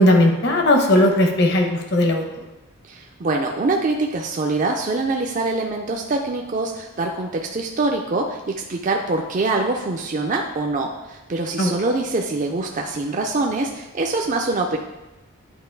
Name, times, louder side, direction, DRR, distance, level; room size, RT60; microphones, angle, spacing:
voice 1, 0.0-2.2 11.6-11.7, left 1 dB, 50° left, 2 dB, 0.9 m, -17 dB
voice 2, 2.9-14.8, right 3 dB, 35° right, 1 dB, 0.4 m, -24 dB
8.9 x 3.0 x 4.5 m, 1.0 s
head